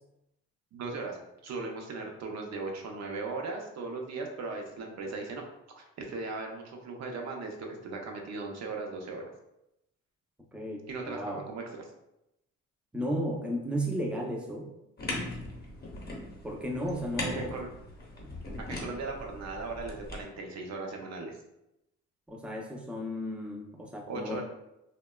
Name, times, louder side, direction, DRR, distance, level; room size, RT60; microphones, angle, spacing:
voice 1, 0.7-1.2 1.4-5.4 5.8-9.2 10.9-11.6 17.3-17.7 18.7-21.3 24.1-24.4, right 3 dB, 60° right, 1 dB, 0.6 m, -38 dB
voice 2, 10.5-11.4 12.9-14.7 16.4-17.5 18.2-18.3 22.3-24.4, equal, 5° right, 0 dB, 0.4 m, -34 dB
sound 1, 15.0-20.2, left 2 dB, 30° left, 0.7 m, -39 dB
2.7 x 2.1 x 2.2 m, 0.87 s
cardioid pair, 90°, 30 cm